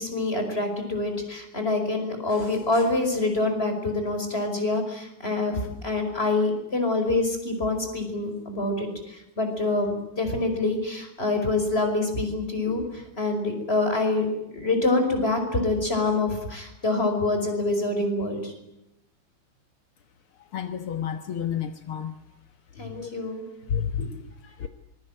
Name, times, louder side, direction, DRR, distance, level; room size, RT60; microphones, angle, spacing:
voice 1, 0.0-18.5 22.8-23.4 24.0-24.1, left 2 dB, 25° left, 5 dB, 5.4 m, -26 dB
voice 2, 20.5-22.1 22.8-23.1 23.7-24.1 24.6-24.7, left 8 dB, 75° left, 8 dB, 2.1 m, -30 dB
25.0 x 22.0 x 9.0 m, 0.87 s
omnidirectional pair, 2.4 m